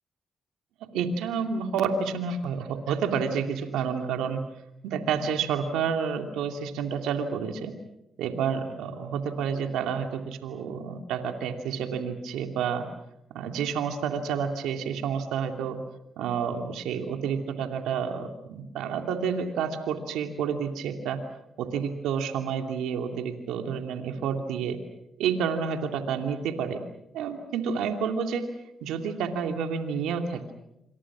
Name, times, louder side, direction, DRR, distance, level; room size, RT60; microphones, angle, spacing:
voice 1, 0.9-4.4 4.8-7.7 8.2-12.9 13.3-15.8 16.2-21.2 21.6-24.8 25.2-26.8 27.1-28.4 28.8-30.4, right 6 dB, 90° right, 5 dB, 2.6 m, -29 dB
27.5 x 26.5 x 6.2 m, 0.83 s
supercardioid pair, 60°, 0 cm